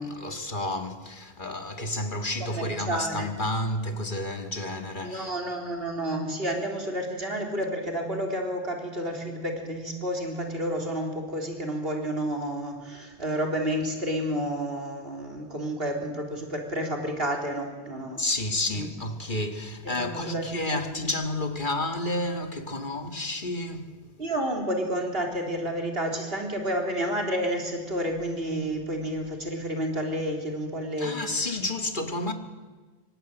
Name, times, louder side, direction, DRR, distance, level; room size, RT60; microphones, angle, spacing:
voice 1, 0.0-5.3 18.2-24.0 31.0-32.3, left 2 dB, 45° left, 2.1 m, -30 dB
voice 2, 2.4-3.3 5.0-18.2 18.7-18.9 19.8-20.8 24.2-31.2, right 1 dB, 60° right, 3.9 m, -30 dB
26.0 x 24.0 x 9.1 m
omnidirectional pair, 1.1 m